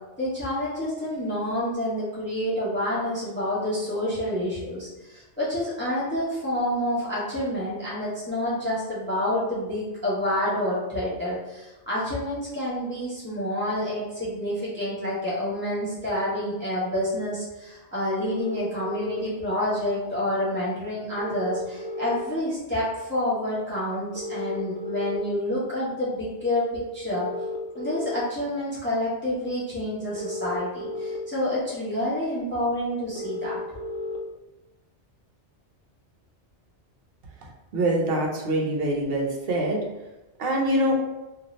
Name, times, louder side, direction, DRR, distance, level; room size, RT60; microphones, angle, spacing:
voice 1, 0.2-27.3 27.7-33.6, left 1 dB, 10° left, -8 dB, 0.7 m, -28 dB
sound 1, 18.2-19.2 21.2-22.2 24.1-25.2 27.1-28.2 30.1-31.2 33.1-34.2, left 2 dB, 60° left, 0.7 m, -33 dB
voice 2, 37.7-39.8 40.4-41.0, right 1 dB, 60° right, -1 dB, 0.8 m, -24 dB
2.7 x 2.5 x 3.0 m, 1.0 s
omnidirectional pair, 1.2 m